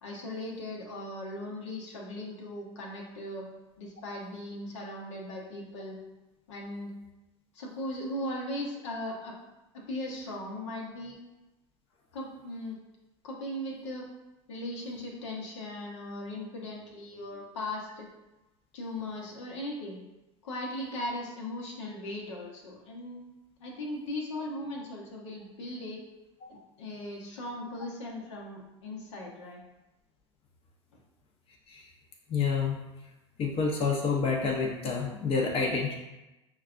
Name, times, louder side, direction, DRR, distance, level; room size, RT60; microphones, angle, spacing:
voice 1, 0.0-3.5 3.8-6.0 6.5-6.9 7.5-9.3 9.7-11.2 12.1-12.8 13.2-14.1 14.5-18.1 18.7-20.0 20.4-23.2 23.6-26.0 26.8-29.6, left 1 dB, 75° left, -2 dB, 0.8 m, -38 dB
voice 2, 32.3-32.8 33.4-36.0, left 5 dB, 40° left, 0 dB, 0.7 m, -28 dB
5.5 x 2.2 x 2.4 m, 1.0 s
hypercardioid pair, 75°, 15 cm